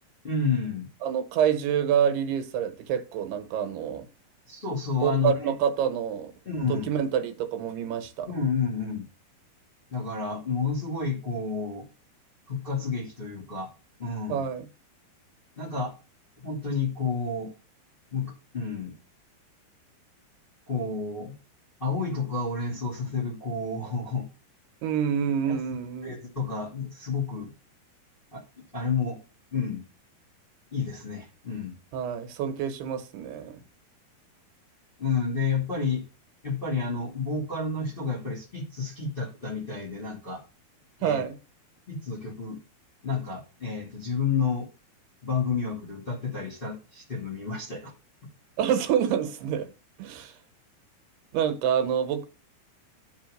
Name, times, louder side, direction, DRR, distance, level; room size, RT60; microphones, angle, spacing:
voice 1, 0.2-0.9 4.5-5.5 6.4-6.9 8.2-9.0 9.9-11.8 12.5-13.7 14.0-14.5 15.6-15.9 16.4-17.5 18.1-18.9 20.7-21.3 21.8-24.3 25.5-25.6 26.0-27.5 28.3-28.4 28.7-29.2 29.5-29.8 30.7-31.7 35.0-36.0 36.4-40.4 41.0-41.2 41.9-42.6 43.0-44.7 45.2-47.9, left 4 dB, 20° left, 1.7 m, -30 dB
voice 2, 1.0-4.1 5.0-6.3 6.7-8.3 14.3-14.7 24.8-26.1 31.9-33.6 41.0-41.4 48.6-49.7 50.0-50.4 51.3-52.3, right 8 dB, 85° right, 3.1 m, -27 dB
10.5 x 4.0 x 6.5 m
omnidirectional pair, 4.6 m